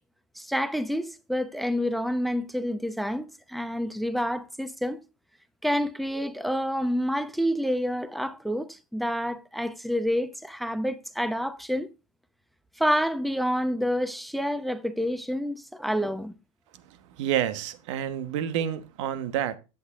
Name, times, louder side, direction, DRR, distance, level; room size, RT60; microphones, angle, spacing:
voice 1, 0.4-5.0 5.6-11.9 12.8-16.3, equal, ahead, 0.9 m, -28 dB
voice 2, 17.2-19.6, right 10 dB, 70° right, 1.2 m, -28 dB
12.5 x 8.4 x 2.4 m
hypercardioid pair, 95°, 16 cm